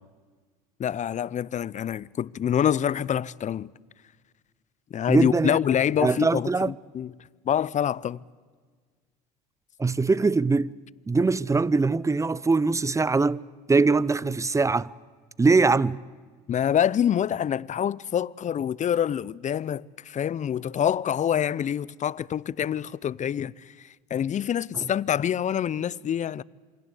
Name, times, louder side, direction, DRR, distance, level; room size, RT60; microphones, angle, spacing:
voice 1, 0.8-3.7 4.9-7.1 7.4-8.2 16.5-26.4, left 9 dB, 35° left, 0.7 m, -26 dB
voice 2, 5.1-5.6 6.0-6.7 9.8-10.7 11.1-14.9 15.4-16.0 24.7-24.9, right 4 dB, 15° right, 0.7 m, -22 dB
27.5 x 24.0 x 8.4 m
hypercardioid pair, 75°, 21 cm